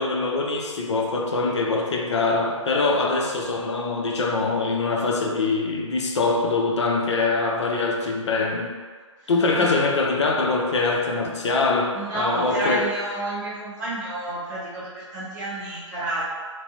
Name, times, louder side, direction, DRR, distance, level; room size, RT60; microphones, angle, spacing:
voice 1, 0.0-8.7 9.3-12.8, left 3 dB, 60° left, 1 dB, 0.5 m, -23 dB
voice 2, 9.2-9.7 11.9-16.3, right 1 dB, 35° right, -7 dB, 1.0 m, -30 dB
3.0 x 2.5 x 2.8 m, 1.5 s
figure-of-eight pair, 135°, 17 cm